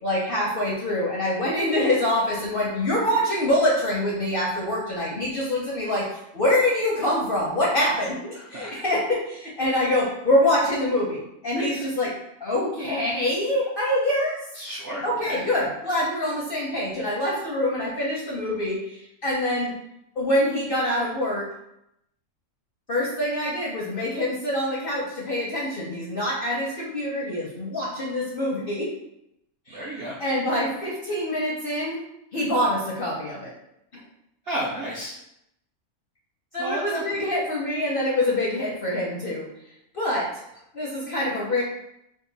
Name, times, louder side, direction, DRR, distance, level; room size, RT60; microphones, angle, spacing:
voice 1, 0.0-6.1 6.3-12.1 12.4-14.4 15.0-19.7 20.2-21.5 22.9-28.9 29.7-29.8 30.2-32.0 32.3-33.5 36.5-39.5 39.9-40.3 40.7-41.6, left 1 dB, 55° left, -4 dB, 0.6 m, -25 dB
voice 2, 8.3-8.7 11.6-11.9 14.6-15.4 29.7-30.2 34.5-35.2 36.6-37.0, right 1 dB, 65° right, -4 dB, 0.6 m, -32 dB
2.9 x 2.3 x 3.8 m, 0.81 s
omnidirectional pair, 1.6 m